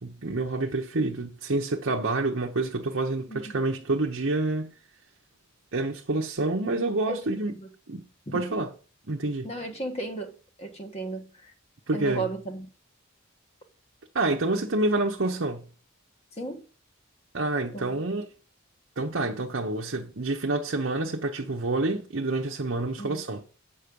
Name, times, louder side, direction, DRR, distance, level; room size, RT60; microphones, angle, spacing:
voice 1, 0.0-4.7 5.7-7.5 7.9-8.0 8.3-8.7 9.1-9.5 11.9-12.3 14.1-15.7 17.3-18.2 19.0-23.4, right 2 dB, 65° right, 0.9 m, -28 dB
voice 2, 3.3-3.6 7.1-7.2 7.6-7.7 8.3-8.4 9.4-10.3 10.6-11.5 11.9-12.7 16.3-16.6 17.7-18.0 23.0-23.2, right 2 dB, 30° left, 1.5 m, -35 dB
8.2 x 5.5 x 5.3 m
head